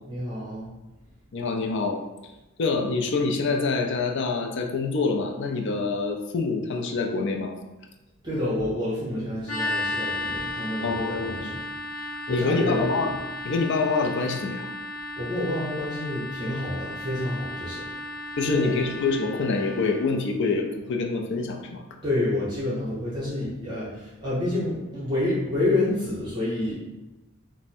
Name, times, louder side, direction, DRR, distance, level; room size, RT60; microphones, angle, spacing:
voice 1, 0.1-0.7 8.2-11.6 12.3-13.0 15.2-17.9 18.5-18.7 22.0-26.7, left 1 dB, 20° right, -9 dB, 1.0 m, -28 dB
voice 2, 1.3-2.0 2.6-7.5 10.8-11.5 12.3-13.2 13.4-14.7 18.4-21.8, left 4 dB, 60° left, 2 dB, 0.4 m, -26 dB
sound 1, 9.5-20.1, left 2 dB, 85° left, 0.8 m, -34 dB
3.4 x 2.1 x 4.2 m, 1.0 s
head